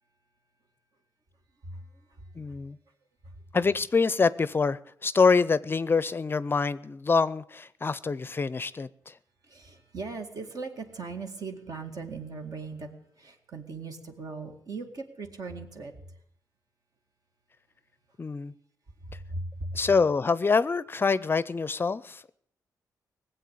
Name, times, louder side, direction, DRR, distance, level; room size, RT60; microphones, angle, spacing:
voice 1, 1.6-2.6 3.2-3.4 9.4-12.9 13.2-15.9 19.0-19.8, right 3 dB, 60° right, 5 dB, 2.1 m, -39 dB
voice 2, 2.4-2.8 3.5-9.2 18.2-18.5 19.7-22.3, left 4 dB, 30° left, 18 dB, 0.5 m, -25 dB
18.0 x 8.0 x 8.5 m, 0.68 s
cardioid pair, 85°, 7 cm